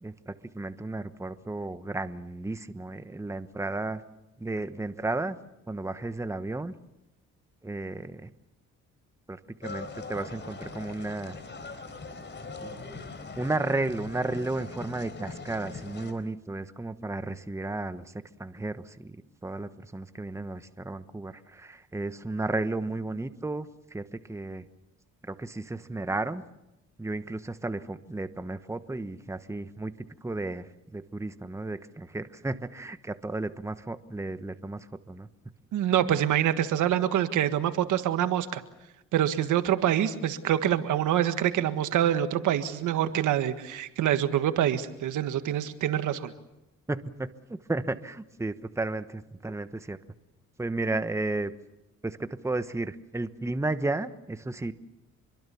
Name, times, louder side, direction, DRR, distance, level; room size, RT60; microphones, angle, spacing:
voice 1, 0.0-4.0 4.4-5.4 5.7-6.7 7.6-8.3 9.3-11.4 12.6-12.7 13.4-24.7 25.2-26.4 27.0-29.9 30.2-35.3 46.9-47.3 47.7-50.0 50.6-51.5 52.0-54.7, right 2 dB, 10° right, 11 dB, 1.1 m, -33 dB
sound 1, 9.6-16.1, left 3 dB, 40° left, 4.1 m, -41 dB
voice 2, 35.7-38.6 39.1-46.3, right 11 dB, 80° right, 10 dB, 1.7 m, -26 dB
26.0 x 23.0 x 7.1 m, 0.94 s
cardioid pair, 90°, 30 cm